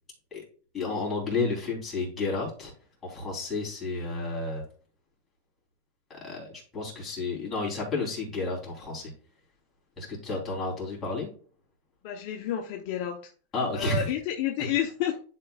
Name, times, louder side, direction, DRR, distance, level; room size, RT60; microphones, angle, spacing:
voice 1, 0.7-2.7 3.0-4.6 6.1-9.1 10.0-11.3 13.5-14.1, left 3 dB, 15° left, -3 dB, 3.4 m, -31 dB
voice 2, 12.0-13.2 13.7-15.2, left 10 dB, 55° left, 4 dB, 0.8 m, -30 dB
10.5 x 4.5 x 2.4 m, 0.43 s
supercardioid pair, 145°, 0 cm